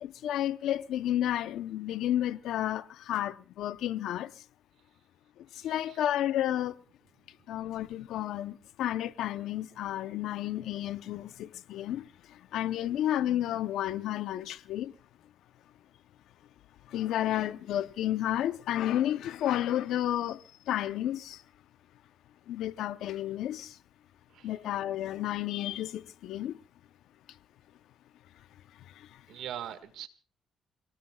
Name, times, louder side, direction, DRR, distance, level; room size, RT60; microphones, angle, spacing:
voice 1, 0.0-4.3 5.6-6.7 7.5-12.1 12.5-14.9 16.9-20.4 20.7-21.4 22.5-23.7 24.4-26.6, left 12 dB, 80° left, 0.7 m, -31 dB
voice 2, 5.5-6.0 24.3-24.5 29.3-30.1, right 10 dB, 80° right, 1.7 m, -42 dB
28.0 x 18.5 x 2.3 m
cardioid pair, 90°, 0 cm